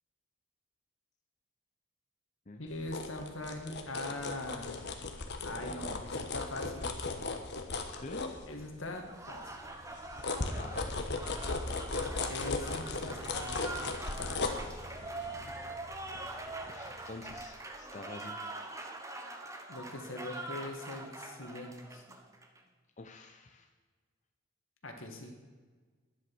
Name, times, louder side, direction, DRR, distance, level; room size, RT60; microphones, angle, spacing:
voice 1, 2.6-4.9 5.4-7.0 8.5-9.5 12.3-13.7 14.2-14.7 19.7-22.0 24.8-25.4, left 2 dB, 85° left, 3 dB, 2.1 m, -42 dB
sound 1, 2.7-9.0 9.4-16.9 17.3-17.4, left 3 dB, 60° left, 1.3 m, -37 dB
voice 2, 5.6-6.1 7.9-8.3 10.6-11.0 16.7-18.7 23.0-23.7, left 2 dB, 35° left, 4 dB, 0.8 m, -47 dB
Applause, 8.9-22.6, right 2 dB, 15° right, 1.1 m, -44 dB
11.5 x 10.0 x 6.3 m, 1.4 s
head